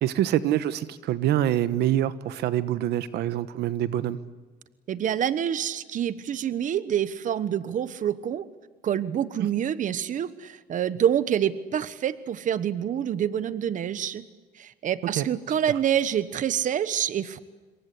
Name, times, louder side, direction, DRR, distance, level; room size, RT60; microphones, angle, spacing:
voice 1, 0.0-4.2 9.4-9.5 15.2-15.3, right 12 dB, 75° right, 14 dB, 1.2 m, -25 dB
voice 2, 4.9-8.4 8.8-14.3 14.5-17.4, right 9 dB, 50° right, 15 dB, 1.2 m, -27 dB
27.0 x 23.0 x 8.4 m, 1.3 s
cardioid pair, 110°, 17 cm